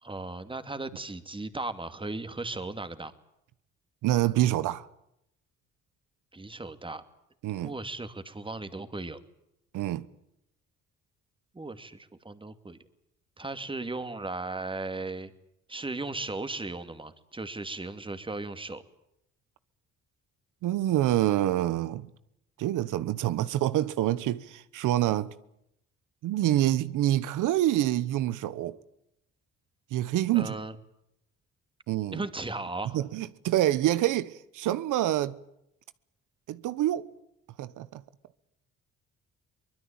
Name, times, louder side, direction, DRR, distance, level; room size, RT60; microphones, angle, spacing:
voice 1, 0.0-3.1 6.3-7.0 7.6-9.2 11.5-12.8 13.4-15.3 15.7-18.8 30.3-30.7 32.1-33.0, right 2 dB, 15° right, 2.5 m, -36 dB
voice 2, 4.0-4.9 7.4-7.7 9.7-10.1 20.6-22.1 22.6-25.3 26.2-28.8 29.9-30.6 31.9-32.2 32.9-35.4 36.5-37.1 37.6-38.0, right 14 dB, 85° right, 1.1 m, -26 dB
24.0 x 21.0 x 8.8 m
cardioid pair, 90°, 30 cm